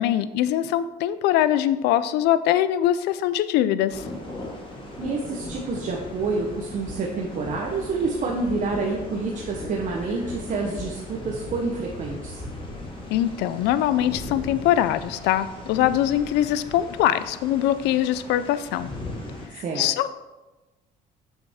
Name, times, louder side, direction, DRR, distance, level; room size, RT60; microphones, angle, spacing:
voice 1, 0.0-4.0 13.1-18.9 19.5-20.1, left 12 dB, 90° left, 14 dB, 0.4 m, -22 dB
sound 1, 3.9-19.5, left 2 dB, 30° left, 1.5 m, -38 dB
voice 2, 5.0-12.4 19.5-19.9, right 3 dB, 50° right, -1 dB, 0.9 m, -28 dB
6.5 x 5.7 x 3.5 m, 1.1 s
cardioid pair, 110°, 17 cm